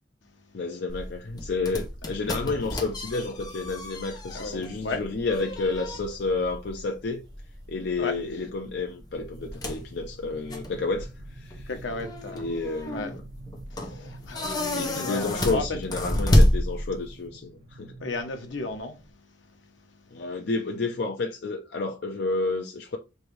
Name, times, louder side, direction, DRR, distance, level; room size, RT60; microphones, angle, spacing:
voice 1, 0.5-7.3 7.7-11.7 12.3-13.2 14.8-18.0 20.1-23.0, left 3 dB, 60° left, 0.5 m, -30 dB
sound 1, 0.9-17.3, left 1 dB, 20° left, 0.7 m, -29 dB
sound 2, 3.4-4.0 4.6-5.5 5.9-6.2 6.6-19.1, right 2 dB, 60° right, 0.8 m, -49 dB
voice 2, 4.3-5.0 8.0-8.2 11.7-12.5 12.9-13.1 13.7-15.8 18.0-20.3, left 3 dB, 80° left, 0.9 m, -35 dB
3.2 x 2.6 x 4.4 m
head